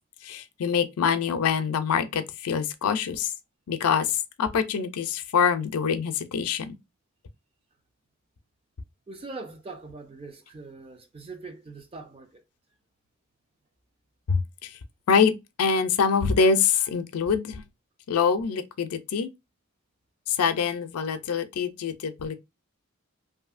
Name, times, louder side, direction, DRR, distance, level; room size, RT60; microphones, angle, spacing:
voice 1, 0.2-3.3 3.7-6.7 14.3-14.7 15.1-15.3 15.6-17.6 18.1-19.3 20.3-22.3, left 6 dB, 85° left, 0.4 m, -25 dB
voice 2, 9.1-12.4, right 3 dB, 25° right, 0.4 m, -42 dB
2.7 x 2.6 x 2.4 m
head